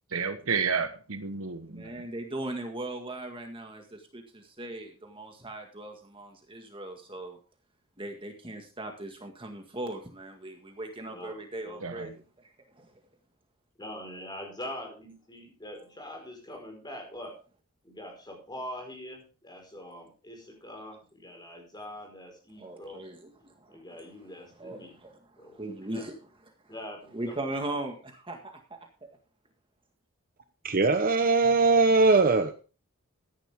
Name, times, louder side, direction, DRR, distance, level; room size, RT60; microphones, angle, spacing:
voice 1, 0.1-1.9 11.8-12.1, right 5 dB, 65° right, 9 dB, 1.2 m, -31 dB
voice 2, 1.7-7.4 8.0-12.9 22.6-23.8 24.6-26.2 26.6-26.7 27.1-28.8, right 1 dB, 25° right, 3 dB, 1.9 m, -39 dB
voice 3, 11.1-11.9 13.8-17.4 17.8-23.1 23.7-25.0 25.4-25.6 25.9-26.1 26.7-27.8, left 1 dB, 20° left, 2 dB, 4.9 m, -43 dB
voice 4, 30.6-32.5, right 3 dB, 40° right, 7 dB, 1.0 m, -21 dB
14.5 x 10.5 x 3.7 m, 0.35 s
head